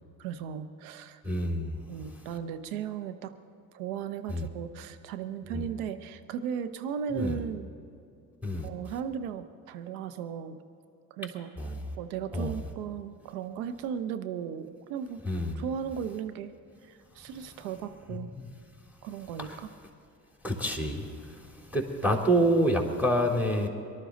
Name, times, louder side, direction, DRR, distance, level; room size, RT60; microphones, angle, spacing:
voice 1, 0.2-1.2 1.9-3.3 3.7-7.7 8.6-10.6 11.1-11.5 12.0-15.2 15.5-16.5 16.8-18.3 19.0-19.7, right 8 dB, 80° right, 11 dB, 1.0 m, -36 dB
voice 2, 1.2-1.8 4.3-4.5 5.5-5.7 7.1-7.4 8.4-8.7 11.6-11.7 12.3-12.5 15.3-15.6 19.4-19.6 20.4-23.7, equal, 5° right, 1 dB, 3.4 m, -28 dB
24.0 x 12.5 x 4.0 m, 2.7 s
hypercardioid pair, 55°, 43 cm